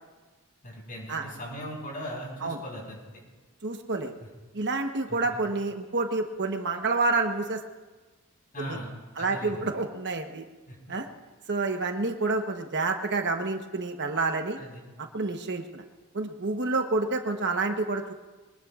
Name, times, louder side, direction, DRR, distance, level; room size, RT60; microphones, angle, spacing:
voice 1, 0.6-3.2 4.2-4.3 5.1-5.4 8.5-9.7 10.7-10.9 14.6-14.8, equal, 40° left, -2 dB, 5.6 m, -39 dB
voice 2, 3.6-4.1 4.5-7.6 8.6-8.8 9.2-10.5 10.9-11.1 11.5-14.6 15.1-15.8 16.1-18.1, right 3 dB, 55° right, 5 dB, 1.1 m, -28 dB
23.5 x 20.0 x 2.5 m, 1.2 s
head